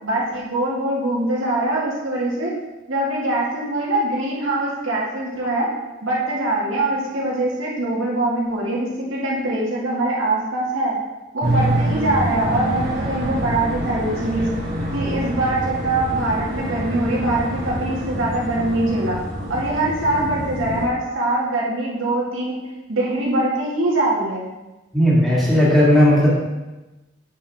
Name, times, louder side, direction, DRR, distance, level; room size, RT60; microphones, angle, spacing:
voice 1, 0.0-2.5 2.9-5.7 6.0-10.9 11.3-14.5 14.9-19.2 19.5-22.6 22.9-24.5, right 2 dB, 85° right, -5 dB, 2.3 m, -23 dB
sound 1, 11.4-20.9, right 1 dB, 45° right, 3.0 m, -26 dB
voice 2, 24.9-26.3, equal, ahead, -8 dB, 2.3 m, -15 dB
9.0 x 6.7 x 3.6 m, 1.1 s
head